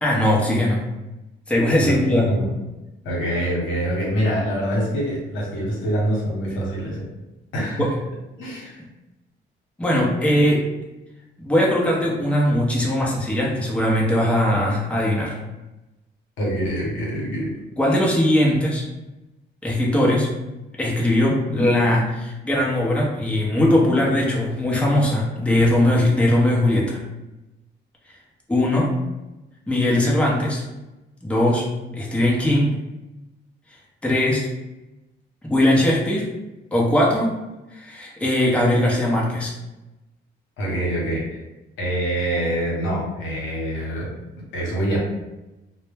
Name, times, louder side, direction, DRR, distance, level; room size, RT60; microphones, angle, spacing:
voice 1, 0.0-0.8 1.5-2.3 7.8-7.9 9.8-10.7 11.4-15.4 17.8-18.9 19.6-20.3 20.8-27.0 28.5-28.9 29.7-30.6 31.2-31.6 31.9-32.8 34.0-34.5 35.4-36.3 36.7-37.3 37.7-39.5, left 1 dB, 5° left, -4 dB, 0.7 m, -20 dB
voice 2, 3.0-7.1 7.5-7.9 8.4-8.8 16.4-17.5 40.6-41.4 41.8-44.1 44.5-45.0, right 1 dB, 80° left, -3 dB, 0.9 m, -25 dB
2.1 x 2.0 x 3.3 m, 1.0 s
cardioid pair, 90°, 20 cm